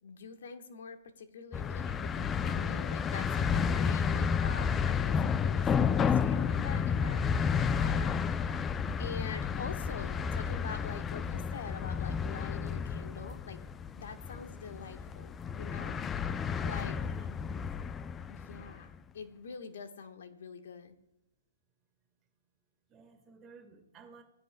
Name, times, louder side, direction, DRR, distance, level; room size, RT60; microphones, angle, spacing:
voice 1, 0.0-8.1 9.0-13.6 13.9-16.0 16.6-17.0 18.3-20.9, left 5 dB, 65° left, 7 dB, 1.3 m, -45 dB
sound 1, 1.5-18.8, left 6 dB, 15° left, 0.4 m, -31 dB
voice 2, 16.7-17.4 22.9-24.2, right 4 dB, 25° right, 5 dB, 1.7 m, -53 dB
18.0 x 10.0 x 2.2 m, 0.89 s
hypercardioid pair, 125°, 0 cm